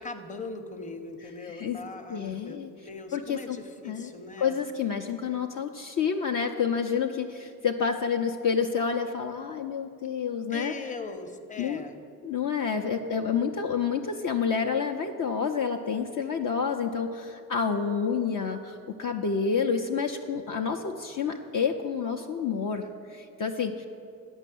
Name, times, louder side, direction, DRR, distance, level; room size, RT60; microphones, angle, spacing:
voice 1, 0.0-4.6 10.5-12.0, left 3 dB, 15° left, 6 dB, 0.8 m, -40 dB
voice 2, 1.4-1.8 2.1-2.7 3.1-3.6 3.8-4.1 4.4-10.7 11.6-11.8 12.2-23.9, left 6 dB, 45° left, 3 dB, 0.6 m, -29 dB
8.9 x 5.4 x 7.6 m, 2.4 s
hypercardioid pair, 40°, 46 cm